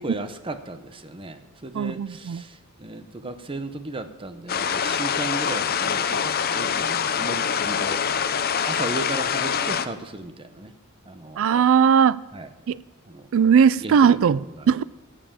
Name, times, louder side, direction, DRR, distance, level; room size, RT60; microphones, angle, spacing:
voice 1, 0.0-8.0 8.6-10.7 11.0-11.4 12.3-12.5 13.1-13.3 13.8-14.7, right 2 dB, 25° right, 0.7 m, -35 dB
voice 2, 1.7-2.4 11.4-12.2 12.7-12.8 13.3-14.8, right 7 dB, 65° right, 0.3 m, -18 dB
sound 1, 4.5-9.9, left 7 dB, 45° left, 0.6 m, -25 dB
15.0 x 7.6 x 7.1 m
head